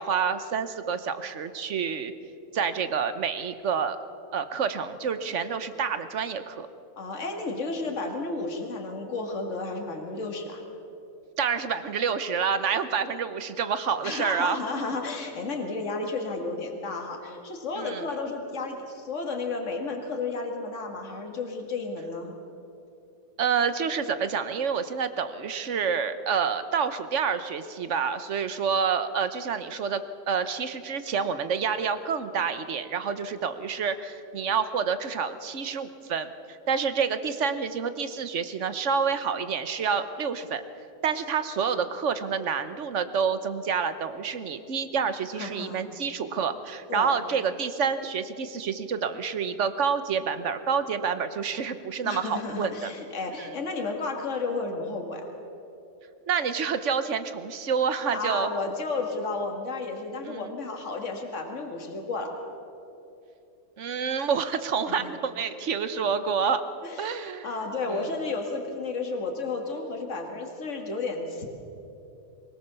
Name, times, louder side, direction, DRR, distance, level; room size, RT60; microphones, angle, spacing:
voice 1, 0.0-2.1 2.5-4.0 4.3-6.7 11.4-14.6 17.8-18.0 23.4-40.6 41.0-52.9 53.4-53.5 56.3-58.5 60.3-60.5 63.8-66.6 67.0-67.5 67.9-68.0, right 6 dB, 60° right, 11 dB, 1.2 m, -28 dB
voice 2, 7.0-10.6 14.0-22.4 45.3-45.8 46.9-47.1 52.0-55.2 58.1-62.3 64.9-65.1 66.8-71.5, left 3 dB, 55° left, 2 dB, 2.3 m, -32 dB
23.5 x 17.5 x 6.9 m, 2.8 s
omnidirectional pair, 1.5 m